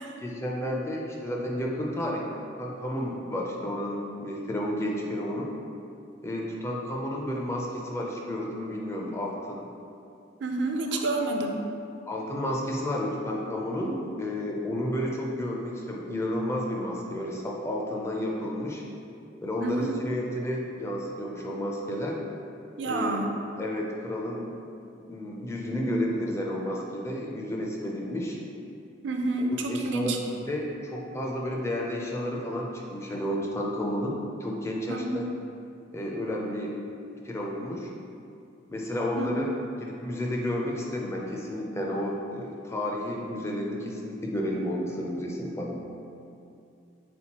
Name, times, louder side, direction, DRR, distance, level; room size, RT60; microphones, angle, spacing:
voice 1, 0.2-2.3 2.6-5.5 6.2-9.7 10.9-11.0 12.1-18.8 19.4-22.2 22.8-23.2 23.6-24.5 25.1-28.4 29.4-30.2 30.5-35.3 35.9-36.8 37.2-37.9 38.7-39.5 39.8-45.8, left 1 dB, 15° left, -1 dB, 0.4 m, -31 dB
voice 2, 10.4-11.6 19.6-20.0 22.8-23.3 25.6-26.1 29.0-30.2 34.9-35.3 39.2-39.5, right 2 dB, 65° right, 3 dB, 0.4 m, -29 dB
4.3 x 3.8 x 2.9 m, 2.6 s
head